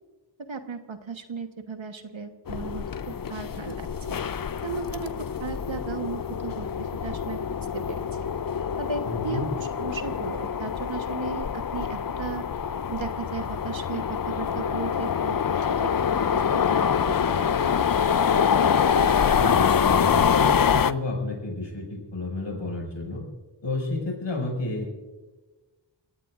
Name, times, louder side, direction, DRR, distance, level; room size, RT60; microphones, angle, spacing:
voice 1, 0.5-4.2 4.6-5.1 5.4-7.5 7.7-8.0 8.8-9.5 9.8-12.4 12.9-15.4 15.8-15.9 16.3-16.6 16.9-17.7, right 5 dB, 80° right, 7 dB, 1.3 m, -36 dB
sound 1, 2.5-20.9, left 7 dB, 50° left, 0.5 m, -25 dB
voice 2, 9.0-9.4 19.2-23.2 23.6-24.9, left 2 dB, 70° left, -1 dB, 5.9 m, -31 dB
28.5 x 16.0 x 2.5 m, 1.2 s
wide cardioid pair, 60°, 46 cm